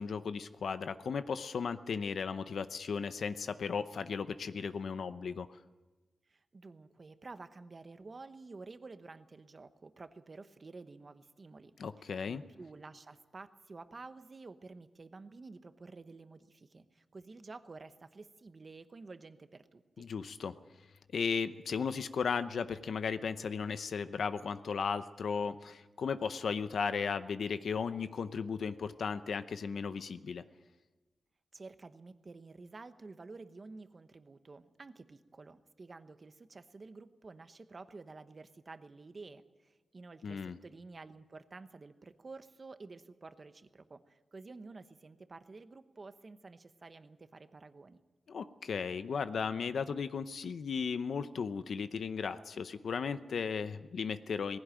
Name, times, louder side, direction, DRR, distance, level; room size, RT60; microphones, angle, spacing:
voice 1, 0.0-5.5 11.8-12.4 20.0-20.5 21.1-30.4 40.2-40.6 48.3-54.6, left 6 dB, 75° left, 12 dB, 0.7 m, -35 dB
voice 2, 6.2-11.7 12.0-20.1 31.5-48.0, right 3 dB, 35° right, 10 dB, 1.0 m, -51 dB
19.0 x 16.5 x 9.0 m, 1.2 s
wide cardioid pair, 150°, 0 cm